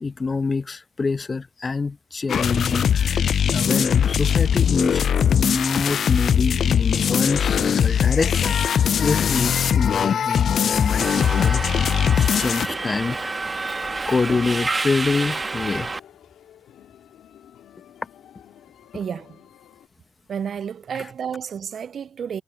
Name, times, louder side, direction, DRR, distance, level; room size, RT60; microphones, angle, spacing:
voice 1, 0.0-5.0 5.3-11.7 12.2-13.4 14.1-15.9 21.0-21.1, left 4 dB, 30° left, 0.9 m, -26 dB
sound 1, 2.3-12.7, left 8 dB, 55° left, 0.3 m, -20 dB
sound 2, 4.3-19.9, left 10 dB, 75° left, 2.2 m, -48 dB
Subway metro underground, 11.0-16.0, right 3 dB, 25° right, 1.4 m, -28 dB
voice 2, 18.9-19.3 20.3-22.4, right 7 dB, 55° right, 0.4 m, -31 dB
cardioid pair, 90°, 0 cm